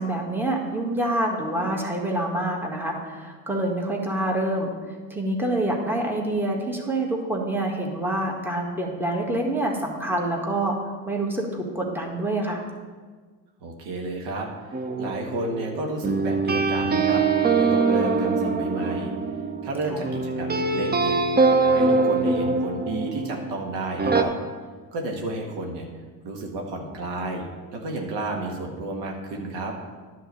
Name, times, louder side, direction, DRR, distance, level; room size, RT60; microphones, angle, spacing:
voice 1, 0.0-4.7 5.1-10.8 11.1-12.6 19.9-20.0, right 1 dB, 5° right, 0 dB, 1.8 m, -26 dB
voice 2, 13.6-17.2 17.5-19.1 19.6-21.2 21.6-24.3 24.9-25.9 26.2-27.5 27.7-29.7, right 2 dB, 60° right, 1 dB, 1.6 m, -31 dB
sound 1, 14.7-23.5 24.0-24.2, right 4 dB, 20° right, 0.8 m, -23 dB
10.5 x 3.9 x 7.5 m, 1.5 s
hypercardioid pair, 65°, 47 cm